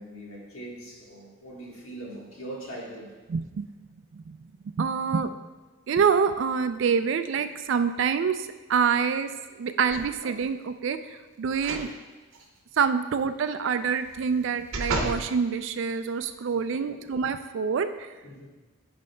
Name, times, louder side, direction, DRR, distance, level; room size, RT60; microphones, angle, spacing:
voice 1, 0.0-3.2 16.5-17.0 18.2-18.5, right 1 dB, 90° left, -2 dB, 1.4 m, -41 dB
voice 2, 3.3-3.7 4.1-4.4 4.8-5.3 5.9-9.3 9.6-11.9 12.8-18.1, right 6 dB, 65° right, 10 dB, 0.3 m, -26 dB
sound 1, 9.9-10.4 11.5-11.9 12.3-12.4 14.0-15.3 15.9-16.0, right 2 dB, 85° right, 0.8 m, -32 dB
10.5 x 5.1 x 2.2 m, 1.2 s
head